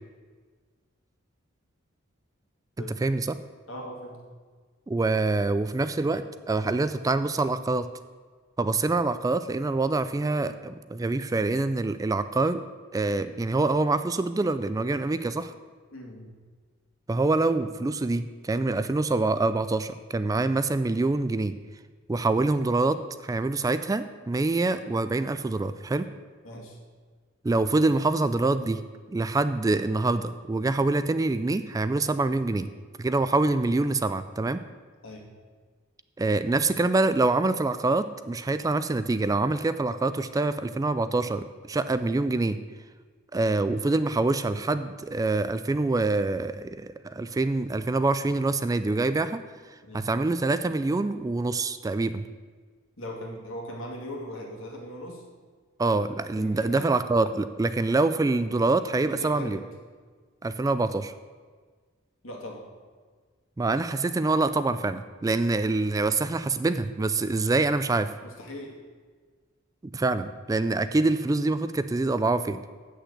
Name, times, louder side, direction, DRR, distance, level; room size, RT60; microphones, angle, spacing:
voice 1, 3.7-4.2 15.9-16.3 26.4-26.8 35.0-35.3 38.5-38.6 49.8-50.1 53.0-55.2 56.3-56.9 59.1-59.7 62.2-62.7 68.2-68.8, left 1 dB, 75° left, 0 dB, 2.3 m, -39 dB
voice 2, 4.9-7.9 8.6-12.6 12.9-15.5 17.1-21.6 22.1-26.1 27.4-28.8 29.1-32.7 33.0-34.6 36.2-42.6 43.3-49.4 49.9-52.2 55.8-59.6 60.4-61.1 63.6-68.1 69.9-72.6, right 3 dB, 15° right, 12 dB, 0.3 m, -25 dB
8.0 x 6.4 x 8.0 m, 1.5 s
head